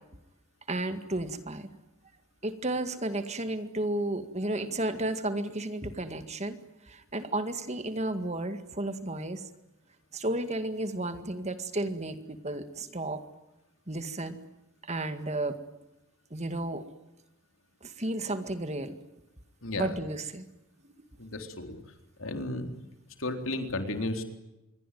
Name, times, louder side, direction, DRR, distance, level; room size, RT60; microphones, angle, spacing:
voice 1, 0.7-1.7 2.4-6.6 6.8-9.5 10.1-13.2 13.9-14.4 14.8-15.6 16.3-16.9 17.8-19.0 19.8-20.4 20.8-20.9, right 2 dB, 30° right, 9 dB, 2.0 m, -33 dB
voice 2, 21.2-21.8 22.2-22.7 23.2-24.2, left 2 dB, 70° left, 5 dB, 3.9 m, -33 dB
26.5 x 23.0 x 9.3 m, 0.97 s
head